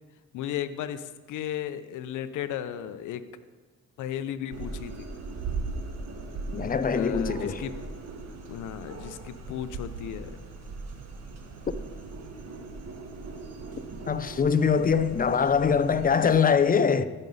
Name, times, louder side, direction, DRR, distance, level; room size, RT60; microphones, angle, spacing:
voice 1, 0.3-3.3 4.0-5.1 6.9-7.8 8.5-10.4, left 10 dB, 80° left, 0.7 m, -35 dB
sound 1, 4.5-16.4, right 3 dB, 55° right, 1.6 m, -39 dB
voice 2, 6.5-7.6 14.1-17.0, left 6 dB, 30° left, 0.5 m, -23 dB
14.5 x 5.5 x 5.4 m
cardioid pair, 90°, 30 cm